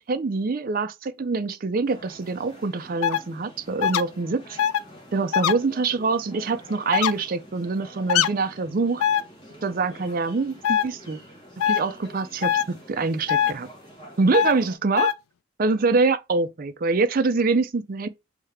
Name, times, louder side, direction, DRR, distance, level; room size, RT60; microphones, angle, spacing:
voice 1, 0.0-4.6 5.1-9.0 9.6-11.2 11.7-13.7 14.2-15.1 15.6-18.1, right 3 dB, 40° right, 0.4 m, -25 dB
sound 1, 1.8-14.8, equal, 20° left, 1.1 m, -47 dB
sound 2, 3.0-3.2 3.8-4.0 4.6-4.8 5.3-5.5 6.9-7.1 8.1-8.3 9.0-9.2 10.6-10.8 11.6-11.8 12.4-12.6 13.3-13.5 14.3-14.5 15.0-15.1, left 10 dB, 85° left, 0.3 m, -21 dB
3.5 x 2.7 x 3.2 m
head